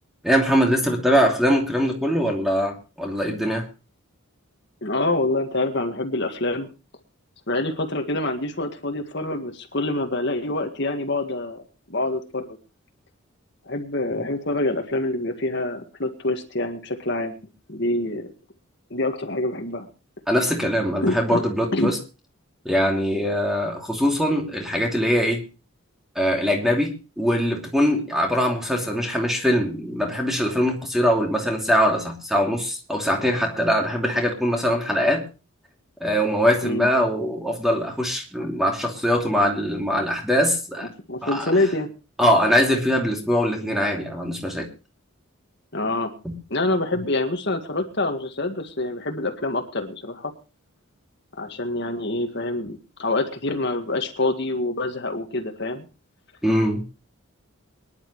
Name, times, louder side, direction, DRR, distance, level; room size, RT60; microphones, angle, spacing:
voice 1, 0.2-3.7 20.3-22.0 22.6-25.4 26.1-35.3 36.0-40.9 41.2-41.6 42.2-44.7 46.2-46.3 56.4-56.8, equal, ahead, 1 dB, 2.8 m, -22 dB
voice 2, 4.8-6.7 7.5-11.6 11.9-12.5 13.6-17.3 17.7-18.3 18.9-19.9 21.0-21.4 21.7-21.9 36.6-36.9 41.1-41.9 43.6-43.8 45.7-46.1 46.5-50.3 51.4-55.8, left 2 dB, 50° left, 5 dB, 1.9 m, -26 dB
24.0 x 11.0 x 3.2 m, 0.32 s
head